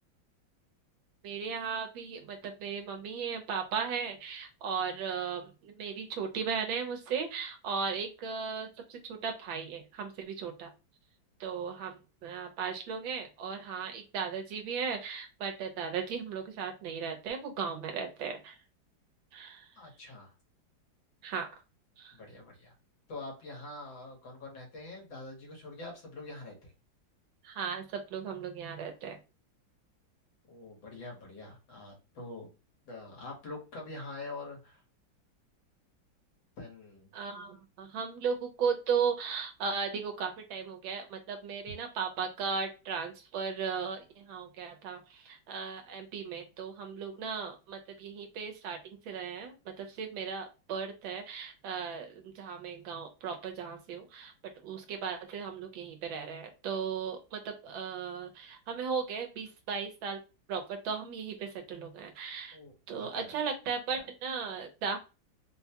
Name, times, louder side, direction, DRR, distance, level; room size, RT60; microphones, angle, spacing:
voice 1, 1.2-10.7 11.4-18.6 19.3-19.7 21.2-21.5 22.0-22.2 27.4-29.2 37.1-60.2 60.5-62.6 62.9-65.0, right 6 dB, 85° right, 4 dB, 1.6 m, -36 dB
voice 2, 19.8-20.3 22.1-22.7 23.1-26.7 30.5-32.5 32.9-34.8 36.6-37.1 62.5-63.4, left 2 dB, 80° left, 0 dB, 2.1 m, -45 dB
4.2 x 2.2 x 2.8 m, 0.30 s
omnidirectional pair, 2.1 m